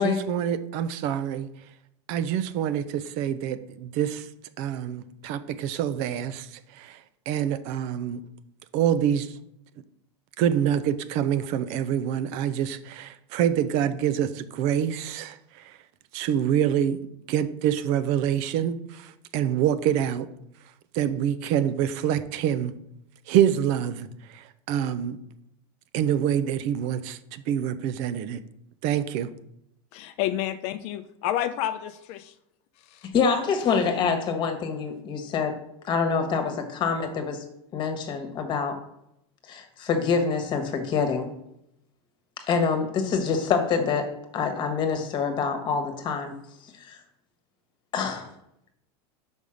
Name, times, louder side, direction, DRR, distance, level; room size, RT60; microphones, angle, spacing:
voice 1, 0.0-1.5 2.1-4.3 4.6-7.0 7.3-8.2 8.7-9.4 10.4-15.8 16.1-20.3 20.9-22.7 23.3-25.2 25.9-28.4 28.8-29.3, right 10 dB, 55° right, 13 dB, 0.6 m, -26 dB
voice 2, 29.9-32.3 32.9-33.1, left 12 dB, 50° left, 10 dB, 0.5 m, -30 dB
voice 3, 33.1-37.4 37.7-38.8 39.5-41.3 42.5-46.3 46.8-47.0 47.9-48.3, left 5 dB, 35° left, 6 dB, 1.4 m, -26 dB
5.4 x 5.3 x 6.4 m, 0.79 s
supercardioid pair, 140°, 14 cm